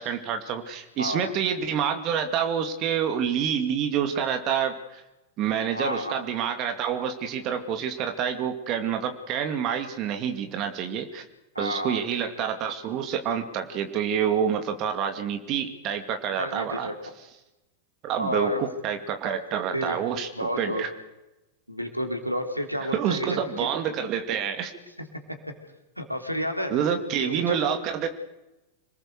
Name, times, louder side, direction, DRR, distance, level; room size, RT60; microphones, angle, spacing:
voice 1, 0.0-5.0 5.4-11.2 11.6-16.9 18.0-20.3 20.6-20.9 22.9-24.7 26.7-28.1, right 8 dB, 35° right, 6 dB, 2.4 m, -27 dB
voice 2, 1.0-1.3 5.7-6.2 11.5-12.0 16.4-16.9 18.2-18.6 19.7-20.0 20.3-20.8 21.7-23.4 26.0-26.7 27.2-27.6, equal, 90° right, 5 dB, 3.2 m, -30 dB
27.0 x 19.5 x 6.7 m, 0.98 s
figure-of-eight pair, 90°, 0 cm